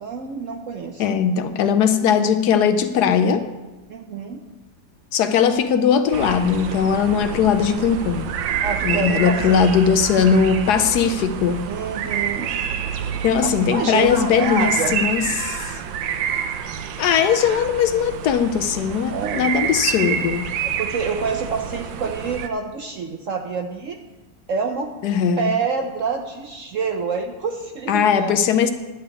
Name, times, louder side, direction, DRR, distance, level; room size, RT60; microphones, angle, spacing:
voice 1, 0.0-1.2 3.9-4.4 8.6-9.6 11.7-12.6 13.7-15.0 19.1-19.5 20.6-24.0 24.5-24.9 25.4-28.4, right 5 dB, 60° right, 5 dB, 0.8 m, -27 dB
voice 2, 1.0-3.4 5.1-8.2 8.8-11.6 13.2-15.8 17.0-20.5 25.0-25.5 27.9-28.7, left 7 dB, 70° left, 9 dB, 1.1 m, -19 dB
sound 1, 6.1-22.5, right 8 dB, 80° right, 1.4 m, -28 dB
11.0 x 5.1 x 8.2 m, 1.1 s
omnidirectional pair, 2.0 m